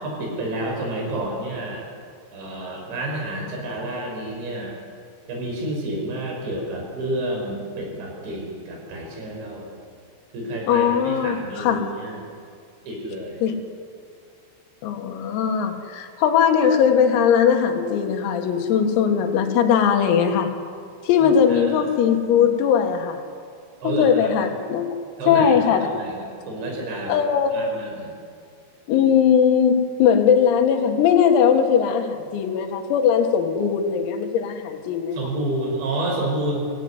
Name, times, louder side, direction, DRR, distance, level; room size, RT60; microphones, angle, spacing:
voice 1, 0.0-1.9 2.3-4.8 5.3-9.7 10.3-12.3 12.8-13.5 21.2-21.9 23.8-24.3 25.2-27.2 27.5-28.1 35.1-36.7, right 1 dB, 60° right, 0 dB, 7.4 m, -29 dB
voice 2, 10.7-11.8 13.4-13.6 14.8-20.5 21.0-23.2 23.8-24.9 25.3-25.9 27.1-27.5 28.9-35.2, left 7 dB, 85° left, 4 dB, 4.5 m, -19 dB
23.5 x 16.5 x 9.8 m, 2.2 s
omnidirectional pair, 6.0 m